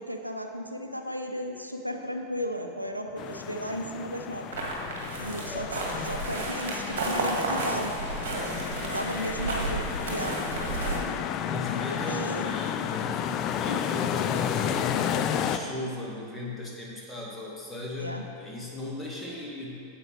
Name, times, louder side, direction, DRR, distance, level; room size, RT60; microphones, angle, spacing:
voice 1, 0.0-4.5 5.2-7.9 8.9-10.4 12.1-12.6 18.0-18.2, equal, 90° right, 4 dB, 0.6 m, -34 dB
sound 1, 3.2-15.6, left 9 dB, 35° left, 0.4 m, -32 dB
sound 2, 4.5-11.0, right 2 dB, 60° right, 1.8 m, -32 dB
voice 2, 8.4-8.8 11.4-19.9, left 2 dB, 10° left, -4 dB, 2.0 m, -37 dB
8.9 x 7.8 x 4.6 m, 2.5 s
figure-of-eight pair, 90°, 0 cm